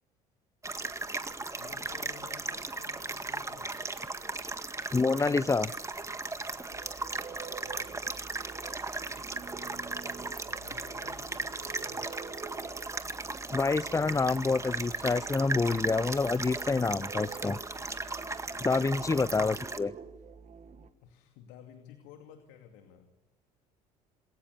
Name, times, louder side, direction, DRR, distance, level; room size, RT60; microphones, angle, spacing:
sound 1, 0.6-19.8, right 3 dB, 15° right, 1.8 m, -37 dB
voice 1, 1.0-4.1 7.6-8.1 10.4-12.7 21.0-23.1, left 8 dB, 65° left, 5 dB, 2.5 m, -54 dB
voice 2, 4.9-5.7 13.5-17.6 18.6-19.9, left 4 dB, 15° left, 22 dB, 0.7 m, -27 dB
sound 2, 6.7-20.9, right 6 dB, 35° right, 1.8 m, -48 dB
27.5 x 22.0 x 6.9 m, 1.1 s
hypercardioid pair, 60°, 20 cm